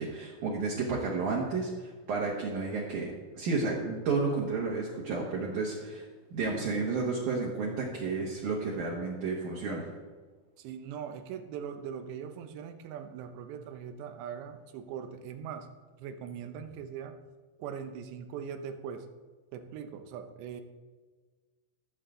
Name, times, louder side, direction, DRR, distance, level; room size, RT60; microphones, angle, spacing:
voice 1, 0.0-6.0 6.3-9.9, right 4 dB, 60° right, -3 dB, 2.4 m, -32 dB
voice 2, 10.6-15.7 16.0-17.2 17.6-19.1 19.5-20.6, right 7 dB, 85° right, 8 dB, 3.1 m, -41 dB
18.0 x 7.6 x 3.8 m, 1.4 s
omnidirectional pair, 5.0 m